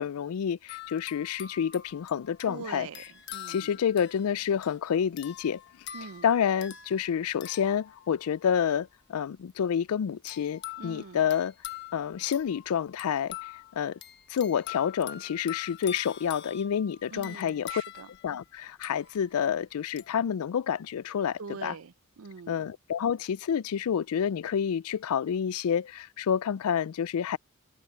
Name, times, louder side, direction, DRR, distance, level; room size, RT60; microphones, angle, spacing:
voice 1, 0.0-2.9 3.5-5.6 6.2-11.5 11.9-13.4 13.8-14.0 14.3-17.8 18.2-21.7 22.5-27.4, left 8 dB, 80° left, 0.4 m, -28 dB
sound 1, 0.7-8.6 10.3-19.5 20.0-20.2, left 12 dB, 50° left, 1.4 m, -45 dB
voice 2, 2.5-3.8 5.9-6.3 10.8-11.3 17.1-18.1 21.4-22.6, right 5 dB, 70° right, 0.6 m, -43 dB
head